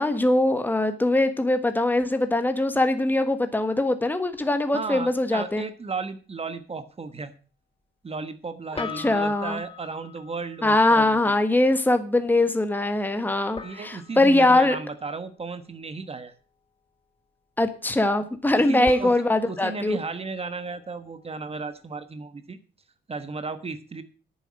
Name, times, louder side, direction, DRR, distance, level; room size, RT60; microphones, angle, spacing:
voice 1, 0.0-5.6 8.7-9.6 10.6-14.8 17.6-20.0, left 2 dB, 10° left, 8 dB, 1.4 m, -22 dB
sound 1, 4.3-4.5 8.8-11.1 13.6-16.1 18.8-21.9, left 5 dB, 25° left, 1.7 m, -43 dB
voice 2, 4.7-7.3 8.0-11.4 13.6-16.3 18.5-19.1 19.5-22.6 23.1-24.0, right 4 dB, 30° right, 10 dB, 1.2 m, -34 dB
9.1 x 7.4 x 7.5 m, 0.38 s
cardioid pair, 90°, 20 cm